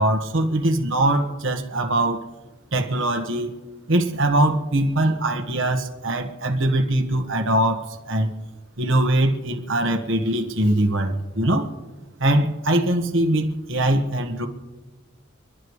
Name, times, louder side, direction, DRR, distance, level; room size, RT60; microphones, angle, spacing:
voice 1, 0.0-2.2 2.7-3.5 3.9-8.3 8.8-11.7 12.2-14.5, right 1 dB, 65° right, 5 dB, 1.4 m, -22 dB
29.5 x 11.0 x 3.2 m, 1.2 s
head